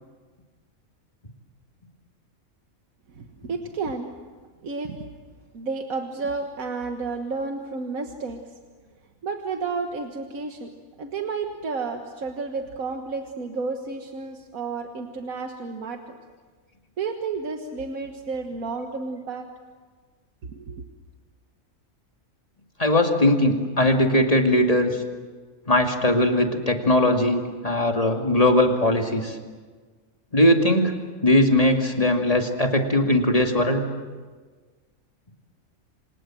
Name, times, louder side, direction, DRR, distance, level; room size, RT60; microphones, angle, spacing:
voice 1, 3.2-4.1 4.6-5.0 5.5-8.4 9.2-10.7 11.0-16.2 17.0-19.5 20.5-20.9, right 4 dB, 85° right, 4 dB, 1.9 m, -31 dB
voice 2, 22.8-24.9 25.7-29.4 30.3-31.0 31.2-33.9, left 1 dB, 25° left, 3 dB, 2.5 m, -20 dB
28.0 x 26.0 x 7.6 m, 1.4 s
omnidirectional pair, 1.4 m